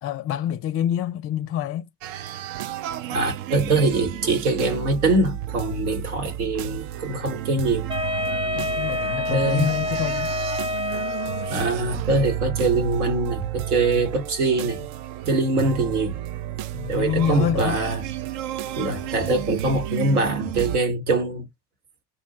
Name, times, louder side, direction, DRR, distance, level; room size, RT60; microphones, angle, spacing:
voice 1, 0.0-1.9 8.5-10.3 16.7-17.8, left 11 dB, 30° left, 0.5 m, -26 dB
sound 1, 2.0-20.8, right 12 dB, 55° right, 0.5 m, -32 dB
voice 2, 3.1-7.9 9.3-9.7 11.5-14.8 15.3-16.2 16.9-18.0 18.8-21.5, right 2 dB, 80° right, 1.2 m, -23 dB
Wind instrument woodwind instrument, 7.9-11.8, left 2 dB, 10° right, 0.7 m, -28 dB
2.6 x 2.1 x 2.7 m
figure-of-eight pair, 60°, 45 cm